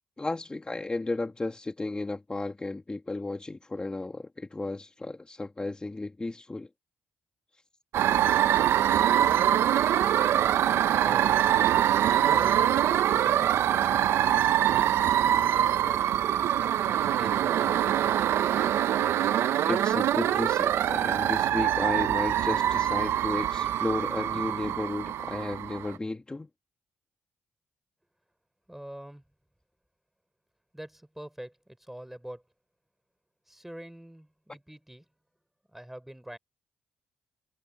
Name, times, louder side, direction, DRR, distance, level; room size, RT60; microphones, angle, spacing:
voice 1, 0.2-6.7 19.7-26.5, left 2 dB, 20° left, 2.2 m, -33 dB
sound 1, 7.9-25.9, right 11 dB, 75° right, 0.7 m, -24 dB
voice 2, 11.0-11.5 12.2-14.9 15.2-18.0 28.7-29.2 30.7-32.4 33.5-35.1 35.7-36.4, right 1 dB, 5° right, 4.8 m, -44 dB
cardioid pair, 70°, 4 cm